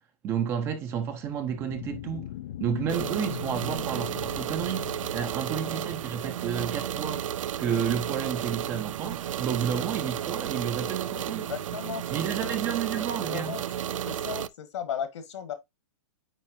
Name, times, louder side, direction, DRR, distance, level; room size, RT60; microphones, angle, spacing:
voice 1, 0.2-2.3 2.6-4.9 5.1-7.3 7.6-11.5 12.1-13.6, right 8 dB, 15° right, 0.6 m, -31 dB
sound 1, 1.2-6.2, left 12 dB, 35° left, 0.4 m, -40 dB
sound 2, 2.9-14.5, right 10 dB, 80° right, 0.5 m, -33 dB
voice 2, 5.5-5.9 11.1-12.6 13.0-13.6 14.1-15.5, left 9 dB, 65° left, 1.5 m, -37 dB
9.0 x 4.1 x 2.7 m
hypercardioid pair, 175°, 17 cm